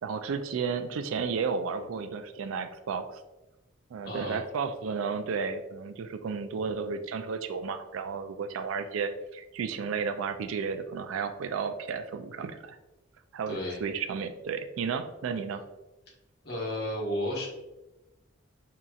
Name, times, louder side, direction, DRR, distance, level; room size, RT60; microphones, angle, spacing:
voice 1, 0.0-3.2 3.9-12.8 13.3-15.6, right 5 dB, 75° right, 9 dB, 0.3 m, -33 dB
voice 2, 4.0-4.4 13.5-13.8 16.4-17.5, left 1 dB, 50° left, -3 dB, 1.1 m, -32 dB
4.9 x 2.8 x 2.3 m, 1.0 s
head